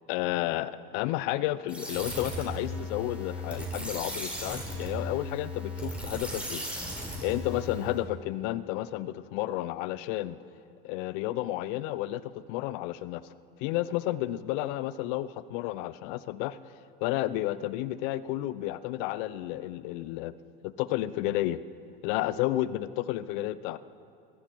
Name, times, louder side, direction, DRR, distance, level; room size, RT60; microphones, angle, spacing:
voice 1, 0.1-6.6 7.2-10.4 10.8-13.3 13.6-16.6 17.0-20.3 20.6-21.6 22.0-23.8, left 15 dB, 65° left, 17 dB, 0.7 m, -31 dB
sound 1, 1.7-8.0, equal, 5° right, 5.1 m, -36 dB
20.0 x 15.0 x 4.7 m, 2.4 s
hypercardioid pair, 95°, 29 cm